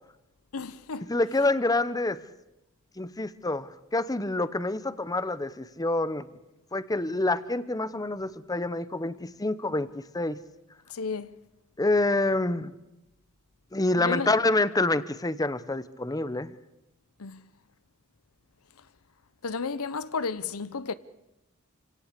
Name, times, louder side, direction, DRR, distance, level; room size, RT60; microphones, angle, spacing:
voice 1, 0.5-1.1 10.9-11.3 14.0-14.3 17.2-17.5 19.4-20.9, left 4 dB, 80° left, 0.8 m, -33 dB
voice 2, 1.1-2.2 3.0-6.3 6.7-10.4 11.8-12.7 13.7-16.5, left 2 dB, 15° left, 0.8 m, -27 dB
27.5 x 17.0 x 8.2 m
head